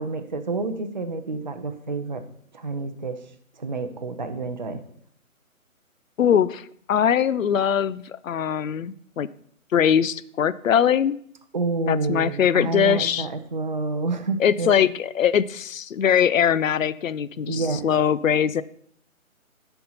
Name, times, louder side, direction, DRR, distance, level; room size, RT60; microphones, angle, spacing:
voice 1, 0.0-2.2 2.5-3.2 3.6-4.8 11.5-14.8 17.5-17.9, right 3 dB, 35° right, 7 dB, 0.6 m, -28 dB
voice 2, 6.2-9.3 9.7-11.2 11.9-13.3 14.4-18.6, left 8 dB, 65° left, 18 dB, 0.5 m, -21 dB
10.5 x 4.5 x 5.5 m, 0.65 s
figure-of-eight pair, 150°, 42 cm